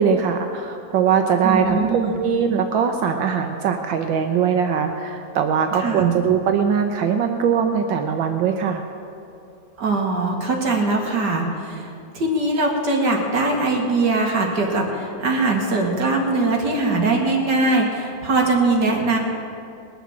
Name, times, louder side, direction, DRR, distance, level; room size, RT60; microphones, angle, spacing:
voice 1, 0.0-8.8, right 7 dB, 75° right, 5 dB, 1.4 m, -21 dB
voice 2, 1.4-2.1 5.8-6.1 9.8-19.2, right 2 dB, 60° right, 0 dB, 2.3 m, -21 dB
20.5 x 7.1 x 7.3 m, 2.6 s
omnidirectional pair, 2.1 m